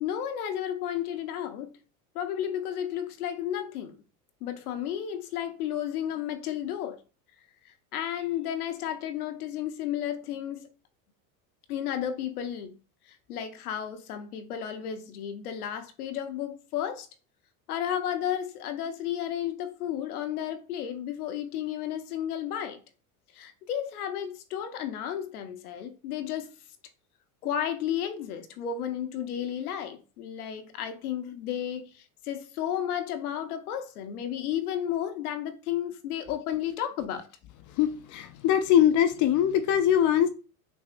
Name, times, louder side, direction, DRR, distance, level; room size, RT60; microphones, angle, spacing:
voice 1, 0.0-1.7 2.1-4.0 4.4-7.0 7.6-10.7 11.7-12.7 13.1-17.1 17.7-22.8 23.3-26.5 27.4-37.3, left 10 dB, 80° left, 0.8 m, -33 dB
voice 2, 37.8-40.3, left 10 dB, 45° left, 0.5 m, -22 dB
6.0 x 2.6 x 2.5 m
hypercardioid pair, 90°, 44 cm